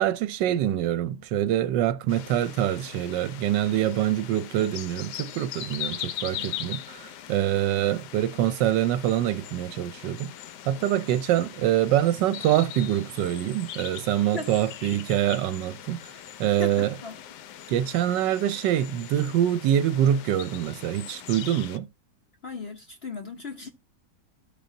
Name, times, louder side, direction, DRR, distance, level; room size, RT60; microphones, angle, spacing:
voice 1, 0.0-10.3 10.7-16.0 16.4-16.9 17.7-21.9, right 11 dB, 90° right, 1.3 m, -25 dB
sound 1, 2.1-21.8, left 11 dB, 75° left, 1.2 m, -41 dB
voice 2, 16.5-17.2 22.4-23.7, left 4 dB, 55° left, 0.7 m, -37 dB
14.0 x 5.1 x 2.7 m
omnidirectional pair, 1.9 m